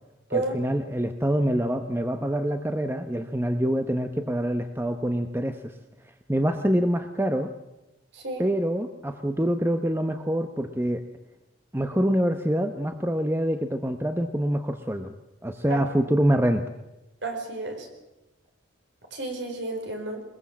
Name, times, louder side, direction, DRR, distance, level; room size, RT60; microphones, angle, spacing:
voice 1, 0.3-5.7 6.3-7.5 8.4-11.0 11.7-15.1 15.4-16.6, equal, 10° right, 7 dB, 0.9 m, -25 dB
voice 2, 17.2-17.9 19.1-20.2, right 2 dB, 60° right, 4 dB, 4.8 m, -31 dB
21.5 x 21.5 x 7.3 m, 0.96 s
head